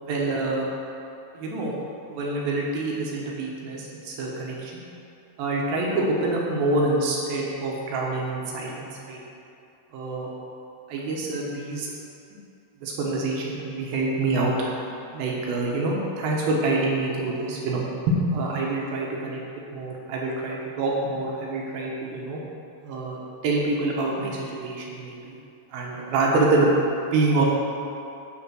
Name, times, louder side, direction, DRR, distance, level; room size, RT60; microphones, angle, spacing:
voice 1, 0.0-0.7 1.3-1.7 2.1-4.8 5.4-9.2 9.9-10.3 10.9-11.9 12.8-14.6 15.1-19.4 19.7-22.4 22.8-25.4 25.7-27.4, right 2 dB, 70° right, -3 dB, 2.4 m, -26 dB
11.5 x 3.9 x 6.2 m, 2.7 s
omnidirectional pair, 5.5 m